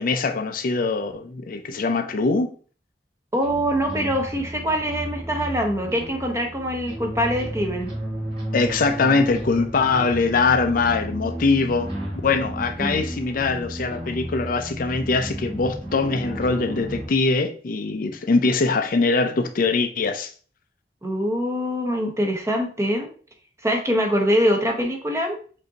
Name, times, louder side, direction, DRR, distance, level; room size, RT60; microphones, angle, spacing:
voice 1, 0.0-2.5 8.5-11.9 12.2-20.3, left 4 dB, 50° left, 0.4 m, -22 dB
voice 2, 3.3-7.9 12.8-13.0 21.0-23.1 23.6-25.4, equal, 15° right, 0.8 m, -24 dB
sound 1, 3.4-17.1, equal, 35° right, 2.0 m, -33 dB
5.1 x 2.7 x 3.8 m
head